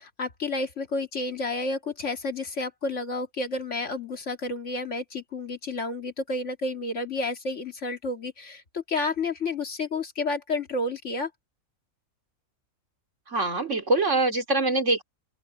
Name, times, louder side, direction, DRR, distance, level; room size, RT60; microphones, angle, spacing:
voice 1, 0.0-11.3, left 2 dB, 55° left, 2.3 m, -30 dB
voice 2, 13.3-15.0, right 2 dB, 55° right, 3.1 m, -24 dB
open air
omnidirectional pair, 1.5 m